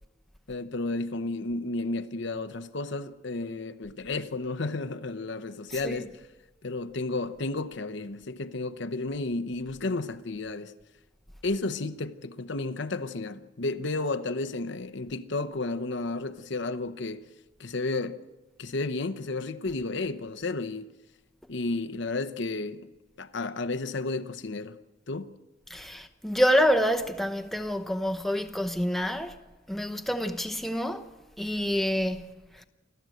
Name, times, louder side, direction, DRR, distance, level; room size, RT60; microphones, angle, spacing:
voice 1, 0.5-6.1 6.6-10.7 11.4-17.3 17.6-18.3 18.6-20.9 21.5-22.9 23.2-24.8 25.1-25.3, left 3 dB, 65° left, 0.9 m, -32 dB
voice 2, 5.7-6.0 25.7-29.4 29.7-31.1 31.4-32.3 32.6-32.7, equal, ahead, 0.9 m, -27 dB
29.0 x 12.5 x 7.8 m
head